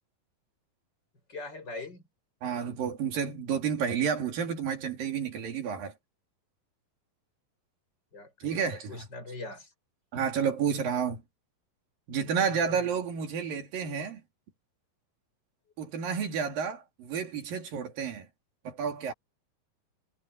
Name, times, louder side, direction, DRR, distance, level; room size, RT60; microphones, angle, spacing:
voice 1, 1.3-2.0 8.1-8.6 8.9-9.7 12.5-12.8, left 2 dB, 30° left, 6.8 m, -42 dB
voice 2, 2.4-5.9 8.4-9.1 10.1-11.2 12.1-14.2 15.8-18.3 18.6-19.1, right 7 dB, 75° right, 4.5 m, -30 dB
omnidirectional pair, 4.0 m